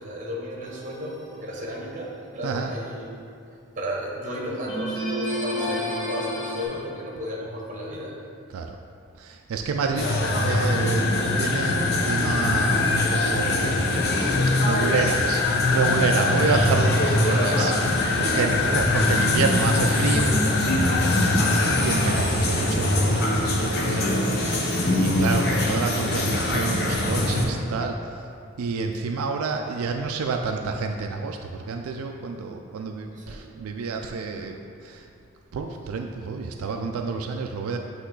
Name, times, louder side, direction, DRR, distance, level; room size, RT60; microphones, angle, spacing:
voice 1, 0.0-3.1 3.7-8.1 14.7-15.0 15.9-16.0 18.1-18.4 21.1-21.4 23.8-24.4 33.1-33.4, equal, 35° right, -2 dB, 0.9 m, -34 dB
sound 1, 0.6-1.3 4.7-6.6, left 1 dB, 15° left, 1.2 m, -30 dB
voice 2, 9.2-11.1 11.4-14.0 14.6-20.4 21.8-24.2 24.9-28.0 28.6-34.6 34.8-35.1 35.5-37.8, right 4 dB, 90° right, 3 dB, 0.4 m, -28 dB
sound 2, 10.0-27.4, left 1 dB, 50° left, 0.7 m, -23 dB
sound 3, 10.2-21.8, left 6 dB, 75° left, 0.3 m, -27 dB
8.1 x 3.1 x 3.8 m, 2.5 s
head